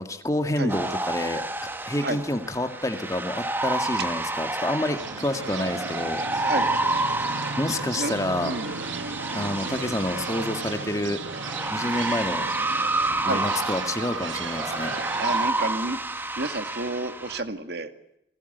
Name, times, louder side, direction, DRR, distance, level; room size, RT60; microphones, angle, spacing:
voice 1, 0.0-1.5 1.9-6.2 7.6-8.5 9.3-11.2 11.7-12.5 13.2-14.9, left 1 dB, 15° left, 7 dB, 2.0 m, -28 dB
sound 1, 0.7-17.4, right 2 dB, 10° right, 1.2 m, -29 dB
sound 2, 5.0-15.5, right 4 dB, 85° right, 1.4 m, -35 dB
voice 2, 8.4-8.8 13.2-13.5 14.9-17.9, right 2 dB, 55° right, 8 dB, 2.1 m, -31 dB
29.0 x 20.0 x 8.1 m, 0.82 s
head